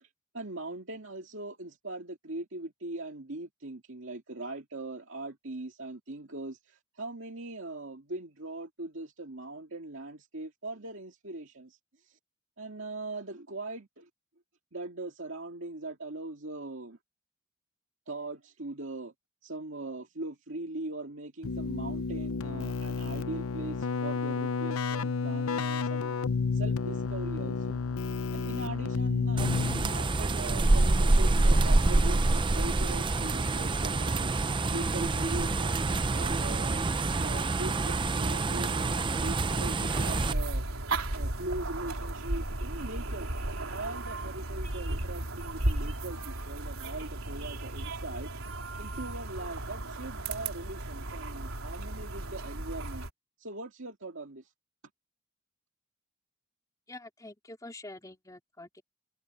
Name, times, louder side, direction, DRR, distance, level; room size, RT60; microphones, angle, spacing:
voice 1, 0.0-12.2 12.6-14.1 14.7-17.0 18.1-19.1 19.4-26.2 26.5-27.8 28.3-34.3 34.7-36.8 37.2-40.7 41.1-48.3 48.8-53.0 53.4-54.5, right 2 dB, 60° right, 2.3 m, -40 dB
Keyboard (musical), 21.4-30.1, left 4 dB, 85° left, 0.6 m, -31 dB
sound 1, 29.4-40.3, right 2 dB, 25° right, 0.5 m, -26 dB
sound 2, 39.9-53.1, right 1 dB, 90° right, 3.7 m, -35 dB
voice 2, 56.9-58.8, left 2 dB, 15° left, 2.9 m, -46 dB
head